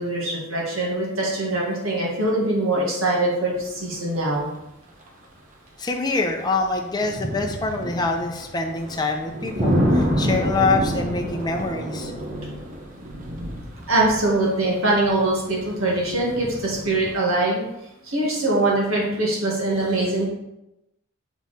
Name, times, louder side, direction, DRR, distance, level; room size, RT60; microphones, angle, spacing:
voice 1, 0.0-4.5 13.9-17.7 18.0-20.3, right 2 dB, 70° right, -3 dB, 2.0 m, -23 dB
sound 1, 3.5-3.8 4.0-4.2 5.1-5.2 6.4-17.1, equal, 35° right, 1.0 m, -28 dB
voice 2, 5.8-12.1, left 3 dB, 20° left, 2 dB, 0.6 m, -25 dB
6.1 x 5.5 x 4.2 m, 0.90 s
head